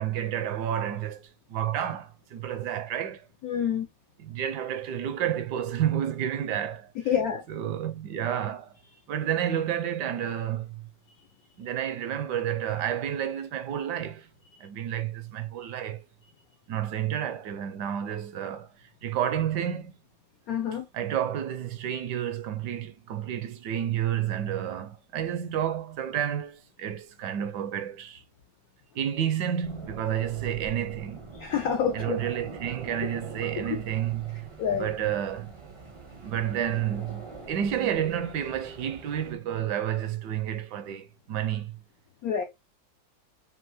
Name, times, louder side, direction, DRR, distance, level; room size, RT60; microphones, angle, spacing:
voice 1, 0.0-3.3 4.2-6.9 7.5-8.8 9.1-10.9 11.6-14.3 14.6-16.0 16.7-19.9 20.9-28.2 28.9-31.2 31.9-35.5 36.2-41.8, right 10 dB, 75° right, 1.1 m, -30 dB
voice 2, 3.4-3.9 7.0-7.5 20.5-20.9 31.3-32.2 34.6-34.9 42.2-42.4, left 8 dB, 75° left, 0.8 m, -27 dB
sound 1, 29.6-39.3, right 3 dB, 45° right, 0.4 m, -44 dB
5.5 x 2.6 x 2.9 m
omnidirectional pair, 2.0 m